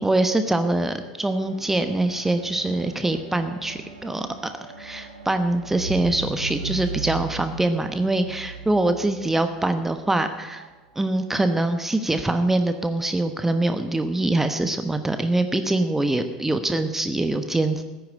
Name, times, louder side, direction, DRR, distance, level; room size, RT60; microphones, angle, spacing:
voice 1, 0.0-4.3 4.8-10.6 11.0-17.8, right 2 dB, 10° right, 8 dB, 1.1 m, -24 dB
sound 1, 1.1-10.7 11.5-11.6, right 5 dB, 85° right, 2.0 m, -38 dB
15.0 x 9.2 x 8.8 m, 1.3 s
figure-of-eight pair, 70°, 3 cm